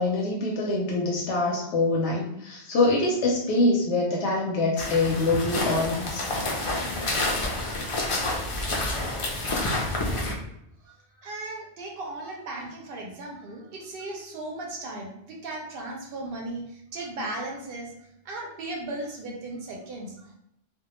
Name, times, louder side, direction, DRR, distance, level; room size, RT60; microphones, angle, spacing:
voice 1, 0.0-6.3, left 2 dB, 90° left, -3 dB, 0.9 m, -24 dB
sound 1, 4.8-10.3, left 2 dB, 50° left, 0.3 m, -28 dB
voice 2, 10.8-17.9 18.2-20.3, right 2 dB, 65° right, 0 dB, 0.7 m, -36 dB
2.2 x 2.2 x 2.9 m, 0.78 s
omnidirectional pair, 1.1 m